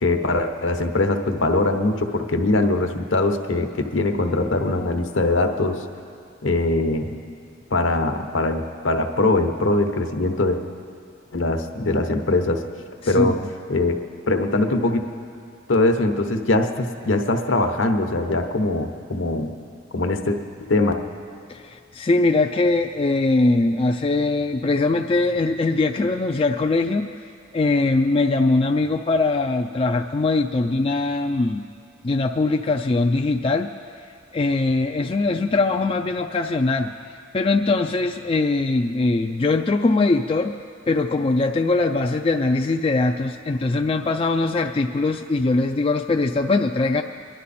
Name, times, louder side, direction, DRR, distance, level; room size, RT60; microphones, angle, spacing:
voice 1, 0.0-5.8 6.4-7.1 7.7-10.6 11.3-12.6 13.1-13.4 13.7-14.0 14.3-15.0 15.7-19.5 19.9-20.4 20.7-20.9, left 2 dB, 70° left, 5 dB, 1.0 m, -22 dB
voice 2, 13.0-13.4 21.5-27.1 27.5-31.6 32.0-33.7 34.3-36.9 37.3-40.5 40.9-47.0, left 3 dB, 30° left, 4 dB, 0.3 m, -21 dB
23.0 x 11.0 x 4.2 m, 2.3 s
head